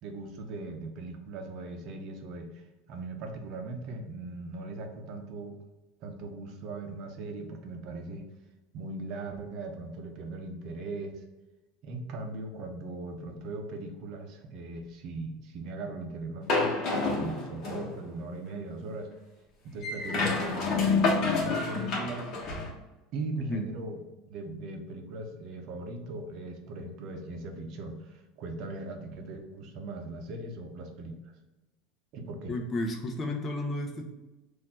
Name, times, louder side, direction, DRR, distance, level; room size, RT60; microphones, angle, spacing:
voice 1, 0.0-2.6 2.9-5.6 6.0-8.2 8.7-11.2 11.8-19.1 19.6-20.9 21.4-22.3 23.1-24.0 24.3-31.2 32.1-32.5, right 2 dB, 55° right, 4 dB, 0.7 m, -39 dB
sound 1, 16.5-18.0 19.8-22.7, left 3 dB, 45° left, 1.1 m, -28 dB
voice 2, 32.5-34.1, left 2 dB, 30° left, 3 dB, 0.7 m, -32 dB
4.2 x 2.6 x 4.2 m, 1.1 s
supercardioid pair, 135°, 0 cm